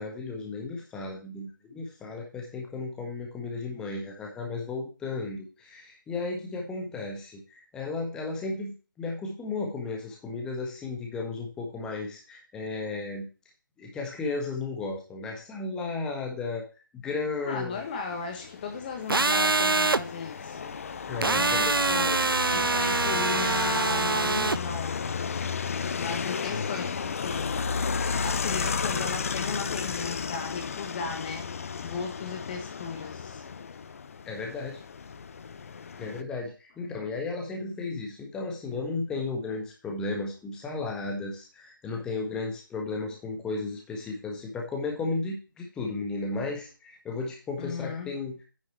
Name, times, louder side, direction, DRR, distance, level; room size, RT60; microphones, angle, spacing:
voice 1, 0.0-13.3 13.8-16.6 16.9-17.8 21.1-21.8 34.3-34.8 36.0-48.5, left 3 dB, 5° left, 0 dB, 1.5 m, -34 dB
voice 2, 17.4-20.7 21.3-25.3 26.0-27.7 28.0-31.5 31.8-33.4 47.6-48.1, left 5 dB, 25° left, 4 dB, 1.4 m, -36 dB
sound 1, 17.8-36.2, left 5 dB, 40° left, 0.8 m, -33 dB
sound 2, 19.1-20.0 21.2-24.6, right 3 dB, 85° right, 0.6 m, -24 dB
9.8 x 6.4 x 4.5 m, 0.33 s
figure-of-eight pair, 155°, 11 cm